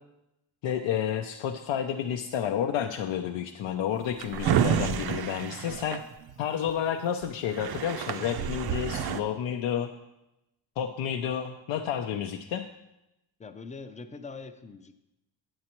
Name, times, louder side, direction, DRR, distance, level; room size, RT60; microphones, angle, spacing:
voice 1, 0.6-6.0 6.4-9.9 10.8-12.7, left 9 dB, 75° left, 5 dB, 0.6 m, -30 dB
Drawer open or close, 3.9-6.7 7.2-7.3 7.5-9.2, right 8 dB, 55° right, 0.5 m, -29 dB
voice 2, 13.4-14.9, left 4 dB, 15° left, 9 dB, 0.4 m, -43 dB
9.5 x 8.7 x 3.0 m, 0.91 s
cardioid pair, 115°, 47 cm